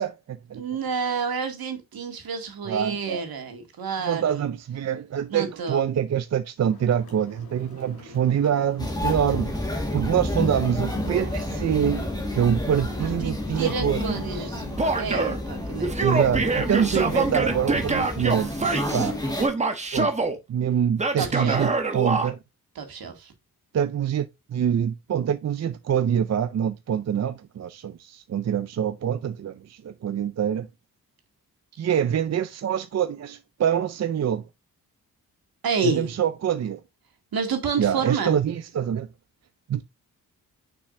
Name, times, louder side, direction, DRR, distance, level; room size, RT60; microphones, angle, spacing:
voice 1, 0.0-0.6 2.6-3.2 4.0-9.7 9.9-14.5 16.0-19.2 19.9-20.1 20.5-22.4 23.7-30.7 31.8-34.4 35.8-36.8 37.8-39.1 39.7-39.8, right 9 dB, 45° right, 0.5 m, -25 dB
voice 2, 0.5-4.5 5.3-5.8 13.0-14.6 15.0-16.4 21.2-21.6 22.8-23.3 35.6-36.1 37.3-38.4, right 5 dB, 75° right, 2.2 m, -29 dB
sound 1, 6.6-15.2, left 4 dB, 80° left, 2.7 m, -46 dB
sound 2, 8.8-19.5, left 1 dB, 10° left, 1.7 m, -30 dB
Male speech man speaking / Yell, 14.8-15.4 15.8-19.1 19.4-20.4 21.0-22.3, right 3 dB, 20° right, 1.1 m, -25 dB
6.4 x 6.0 x 2.6 m
wide cardioid pair, 170°, 36 cm